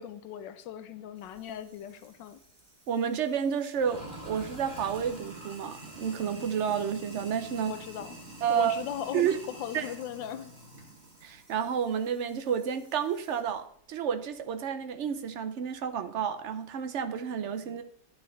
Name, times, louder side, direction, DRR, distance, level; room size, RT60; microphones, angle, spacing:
voice 1, 0.0-2.4 7.6-8.2 8.5-10.5, left 10 dB, 90° left, 1.3 m, -38 dB
Sink (filling or washing), 1.2-13.5, right 1 dB, 25° right, 2.2 m, -48 dB
voice 2, 2.9-7.7 8.4-8.8 9.1-9.4 9.7-9.9 11.2-17.8, right 8 dB, 75° right, 0.6 m, -30 dB
12.0 x 9.0 x 3.2 m
omnidirectional pair, 1.9 m